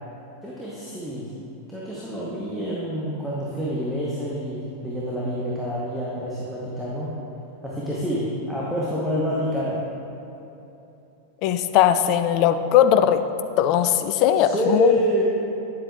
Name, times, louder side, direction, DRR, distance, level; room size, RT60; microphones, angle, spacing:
voice 1, 0.4-1.3 1.7-7.1 7.6-9.8 14.4-15.2, equal, ahead, -7 dB, 1.0 m, -27 dB
voice 2, 11.4-13.2 13.6-15.0, left 10 dB, 40° left, 10 dB, 0.3 m, -19 dB
9.9 x 7.5 x 2.4 m, 2.9 s
figure-of-eight pair, 90°, 0 cm